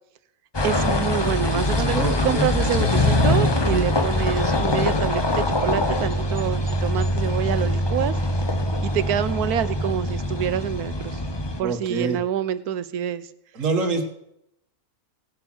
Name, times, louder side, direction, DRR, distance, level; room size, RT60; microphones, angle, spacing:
sound 1, 0.5-11.6, left 1 dB, 20° left, 0.8 m, -23 dB
voice 1, 0.6-2.0 2.2-8.1 8.8-11.2 11.6-13.3, right 9 dB, 90° right, 14 dB, 1.3 m, -26 dB
voice 2, 1.9-2.5 11.6-12.2 13.5-14.1, right 3 dB, 60° right, 5 dB, 1.8 m, -25 dB
17.5 x 7.8 x 6.2 m, 0.82 s
omnidirectional pair, 1.6 m